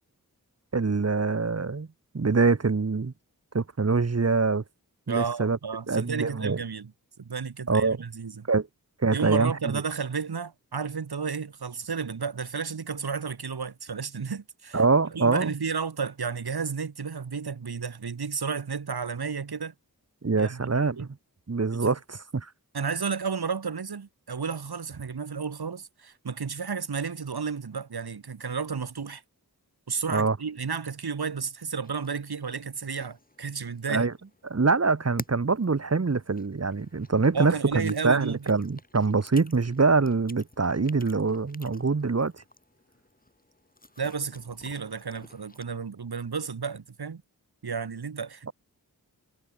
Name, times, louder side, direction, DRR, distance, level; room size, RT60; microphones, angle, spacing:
voice 1, 0.7-1.9 2.1-3.1 3.5-4.6 5.1-5.6 5.9-6.6 7.7-8.0 8.5-8.7 9.0-9.5 14.7-15.5 20.2-21.1 21.5-22.5 30.1-30.4 33.9-34.1 34.5-42.4, right 4 dB, 40° right, 1.4 m, -24 dB
voice 2, 5.1-6.9 7.2-8.5 9.1-14.8 15.1-19.7 20.3-21.1 21.7-22.0 22.7-29.2 29.9-34.1 37.3-38.4 44.0-47.2 47.6-48.5, right 5 dB, 80° right, 2.2 m, -32 dB
sound 1, 31.8-45.6, left 2 dB, 25° left, 2.5 m, -50 dB
wide cardioid pair, 65°, 38 cm